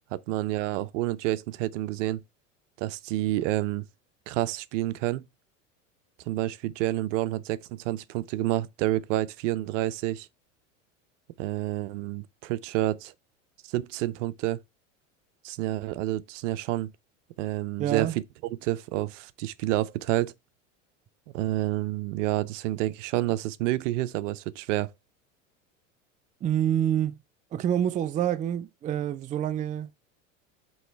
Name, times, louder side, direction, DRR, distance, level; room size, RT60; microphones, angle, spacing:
voice 1, 0.0-2.2 2.8-3.8 4.3-5.2 6.3-10.3 11.4-13.1 13.7-14.6 15.4-16.9 17.4-18.1 18.4-20.3 21.3-24.9, right 15 dB, 70° right, 0.6 m, -29 dB
voice 2, 17.8-18.2 26.4-27.2 27.5-29.9, right 10 dB, 20° right, 0.4 m, -27 dB
7.7 x 3.1 x 4.5 m
hypercardioid pair, 95°, 39 cm